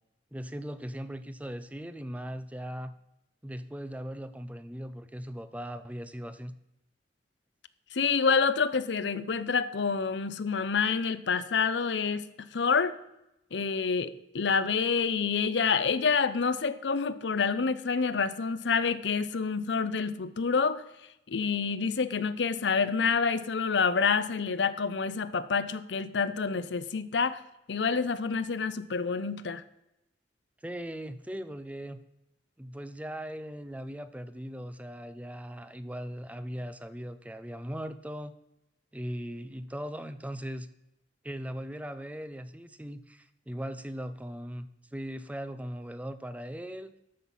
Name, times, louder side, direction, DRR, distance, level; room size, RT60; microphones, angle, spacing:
voice 1, 0.3-2.9 3.4-6.6 30.6-32.0 32.6-38.3 38.9-40.7 41.2-46.9, equal, 10° right, 12 dB, 0.5 m, -39 dB
voice 2, 7.9-12.2 12.5-13.0 13.5-20.8 21.3-27.4 27.7-29.6, left 5 dB, 75° left, 14 dB, 0.6 m, -28 dB
13.0 x 6.0 x 5.5 m, 0.88 s
head